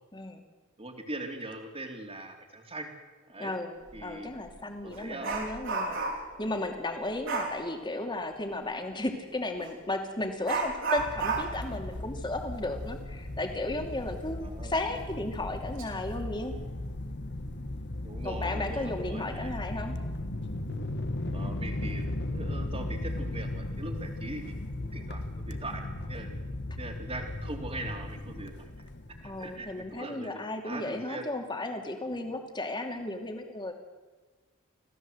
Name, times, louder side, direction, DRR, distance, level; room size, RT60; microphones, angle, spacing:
voice 1, 0.1-0.4 3.4-16.5 18.2-20.0 29.2-33.7, left 2 dB, 20° left, 4 dB, 2.7 m, -34 dB
voice 2, 0.8-2.9 3.3-3.5 3.9-4.3 4.8-5.5 14.4-14.7 18.0-19.5 21.3-24.6 24.8-26.3 26.8-28.6 29.2-31.3, right 2 dB, 30° right, 4 dB, 3.0 m, -41 dB
Dog, 3.9-4.0 4.5-6.4 7.2-7.6 9.6-9.7 10.4-13.7 14.0-14.1 14.7-14.8 15.4-15.8 16.2-16.5, right 3 dB, 65° right, 5.0 m, -33 dB
sound 1, 11.0-30.0, left 1 dB, 55° left, 1.5 m, -37 dB
27.0 x 16.5 x 7.9 m, 1.3 s
head